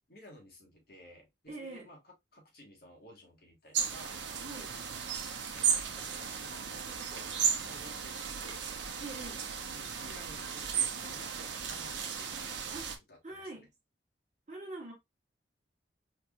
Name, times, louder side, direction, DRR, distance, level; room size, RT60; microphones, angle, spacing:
voice 1, 0.1-4.8 5.4-8.6 9.7-12.8 13.1-13.7, equal, 55° left, 1.5 m, -55 dB
voice 2, 1.5-1.9 4.4-4.7 9.0-9.4 12.7-12.8 13.2-13.7 14.5-14.9, right 2 dB, 40° right, 1.3 m, -44 dB
sound 1, 3.7-13.0, right 7 dB, 80° right, 0.7 m, -35 dB
4.6 x 2.9 x 2.4 m
head